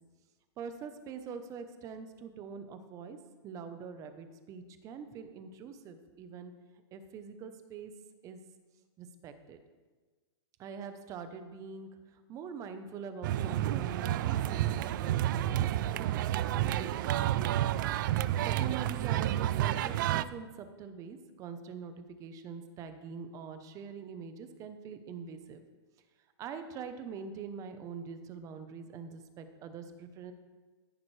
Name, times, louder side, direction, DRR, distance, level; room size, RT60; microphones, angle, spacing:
voice 1, 0.6-3.2 3.4-6.5 6.9-7.9 8.2-8.4 9.0-9.6 10.6-11.9 12.3-17.8 18.2-25.6 26.4-30.3, right 6 dB, 20° right, 9 dB, 0.9 m, -44 dB
sound 1, 13.2-20.2, right 13 dB, 45° right, 0.4 m, -30 dB
14.0 x 11.0 x 3.3 m, 1.4 s
hypercardioid pair, 155°, 15 cm